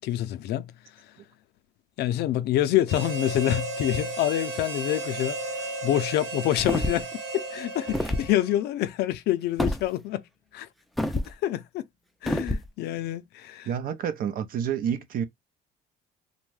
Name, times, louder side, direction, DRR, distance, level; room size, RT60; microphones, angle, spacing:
voice 1, 0.0-0.7 2.0-7.1 7.3-10.2 10.5-10.7 11.2-11.8 12.2-13.7, left 13 dB, 75° left, 0.4 m, -27 dB
Harmonica, 2.9-8.7, right 2 dB, 85° right, 0.9 m, -34 dB
sound 1, 6.6-7.1 7.9-8.3 9.6-9.8 11.0-11.3 12.3-12.7, left 1 dB, ahead, 0.3 m, -27 dB
voice 2, 13.7-15.2, right 8 dB, 60° right, 0.6 m, -29 dB
2.6 x 2.2 x 3.1 m
cardioid pair, 110°, 17 cm